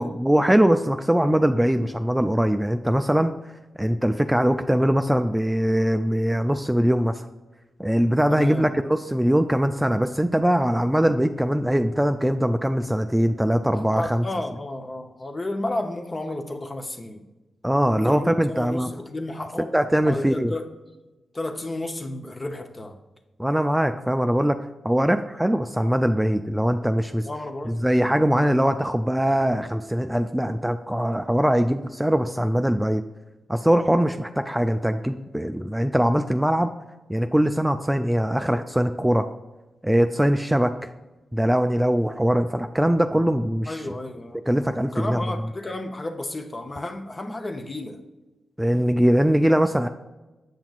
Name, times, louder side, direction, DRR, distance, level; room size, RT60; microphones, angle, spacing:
voice 1, 0.0-3.3 3.8-7.2 7.8-14.2 17.6-18.9 19.7-20.5 23.4-24.6 24.8-27.3 27.7-33.0 33.5-36.7 37.1-39.3 39.8-40.9 41.3-43.8 44.5-45.2 48.6-49.9, equal, 10° right, 7 dB, 0.3 m, -21 dB
voice 2, 8.3-8.7 13.8-17.2 17.9-19.7 20.0-20.7 21.3-23.0 27.3-27.8 43.7-44.4 44.9-48.0, left 2 dB, 35° left, 6 dB, 0.8 m, -32 dB
8.0 x 5.8 x 2.4 m, 1.1 s
supercardioid pair, 50°, 0 cm